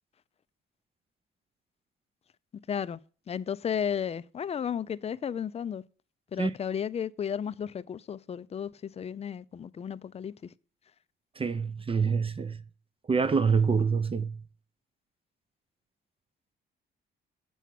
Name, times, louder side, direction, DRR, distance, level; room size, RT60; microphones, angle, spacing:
voice 1, 2.7-3.0 3.3-5.8 6.3-10.3, left 8 dB, 30° left, 0.4 m, -33 dB
voice 2, 11.4-12.6 13.1-14.4, right 5 dB, 30° right, 0.6 m, -26 dB
7.1 x 5.8 x 7.5 m
cardioid pair, 90°, 20 cm